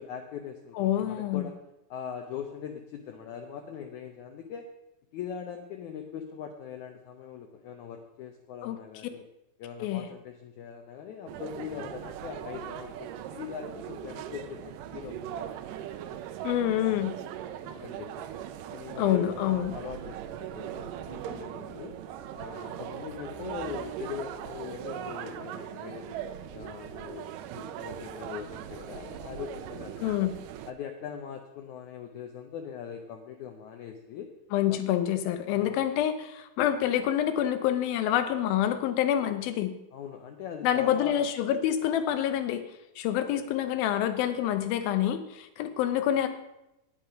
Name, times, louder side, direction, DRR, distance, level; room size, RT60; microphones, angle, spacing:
voice 1, 0.0-1.6 1.9-4.7 5.1-9.2 9.6-15.9 16.6-16.8 17.6-18.3 18.7-21.9 22.3-26.2 26.5-30.3 30.7-34.3 34.7-34.8 35.5-35.8 39.9-41.3, left 8 dB, 75° left, 4 dB, 1.9 m, -41 dB
voice 2, 0.8-1.5 8.6-8.8 9.8-10.1 16.4-17.1 19.0-19.7 30.0-30.3 34.5-39.7 40.6-42.6 43.0-46.3, left 11 dB, 90° left, 10 dB, 2.7 m, -27 dB
sound 1, 11.3-30.7, right 10 dB, 80° right, 2.1 m, -40 dB
9.4 x 8.7 x 5.7 m, 0.89 s
omnidirectional pair, 4.1 m